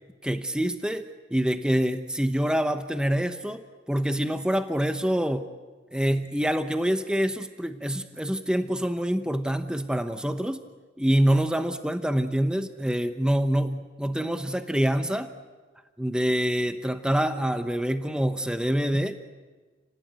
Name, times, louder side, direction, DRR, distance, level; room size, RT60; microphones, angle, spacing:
voice 1, 0.2-5.5 5.9-10.6 11.0-15.3 16.0-19.3, equal, 5° right, 8 dB, 0.9 m, -26 dB
30.0 x 18.5 x 9.3 m, 1.3 s
head